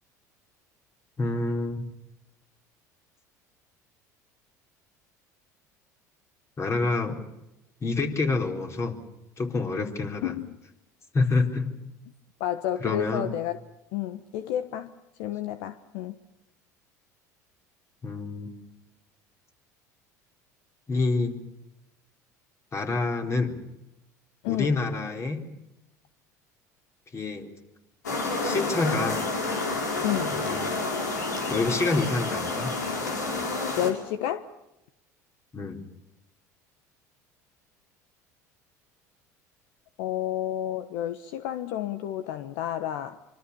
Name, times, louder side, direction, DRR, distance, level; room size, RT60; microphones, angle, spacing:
voice 1, 1.2-1.9 6.6-7.2 7.8-9.0 9.4-10.4 11.1-11.7 12.8-13.3 18.0-18.5 20.9-21.4 22.7-23.6 24.5-25.4 27.1-27.5 28.4-29.2 30.3-30.7 31.5-32.7 35.5-35.8, left 3 dB, 30° left, 4 dB, 4.4 m, -27 dB
voice 2, 10.2-10.6 12.4-13.6 13.9-14.9 15.2-16.1 24.4-24.8 30.0-30.3 33.8-34.4 40.0-43.2, left 11 dB, 70° left, 11 dB, 1.2 m, -30 dB
sound 1, 28.0-33.9, left 3 dB, 90° left, 4.6 m, -29 dB
25.0 x 25.0 x 7.1 m, 0.90 s
hypercardioid pair, 70°, 9 cm